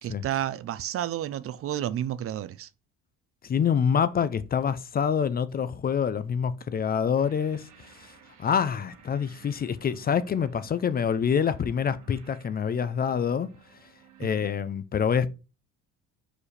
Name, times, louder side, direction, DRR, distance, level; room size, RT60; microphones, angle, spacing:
voice 1, 0.0-2.7, right 11 dB, 45° right, 0.5 m, -31 dB
voice 2, 3.4-8.1 8.4-13.5 14.2-15.3, left 7 dB, 30° left, 0.5 m, -26 dB
sound 1, 7.1-14.3, right 8 dB, 70° right, 2.0 m, -55 dB
4.9 x 4.9 x 4.2 m
cardioid pair, 110°, 31 cm